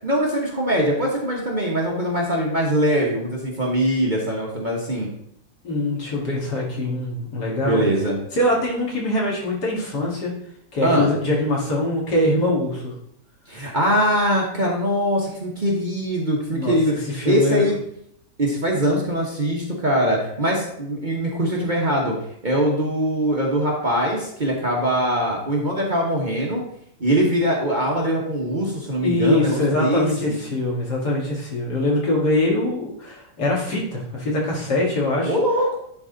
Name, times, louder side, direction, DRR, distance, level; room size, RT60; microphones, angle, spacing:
voice 1, 0.0-5.1 7.6-8.2 10.8-11.1 13.5-17.7 18.4-22.2 22.4-26.6 27.0-30.4 35.2-35.8, equal, 30° right, -2 dB, 1.2 m, -22 dB
voice 2, 5.6-7.8 8.3-10.3 10.7-12.9 16.5-17.7 29.0-35.4, left 1 dB, 70° left, -4 dB, 2.6 m, -23 dB
9.9 x 4.1 x 3.9 m, 0.71 s
omnidirectional pair, 1.8 m